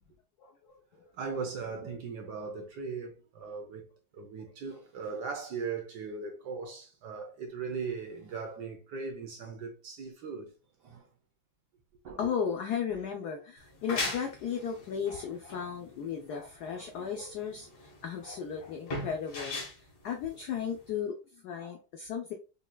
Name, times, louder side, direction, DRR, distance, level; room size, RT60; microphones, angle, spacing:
voice 1, 1.1-3.9 4.1-10.5 10.8-11.0 12.0-12.2, right 5 dB, 65° right, 1.1 m, -38 dB
voice 2, 12.2-19.6 20.0-22.3, left 7 dB, 85° left, 0.8 m, -35 dB
sound 1, 13.6-21.0, left 2 dB, 55° left, 1.8 m, -39 dB
5.3 x 2.8 x 2.2 m
omnidirectional pair, 2.3 m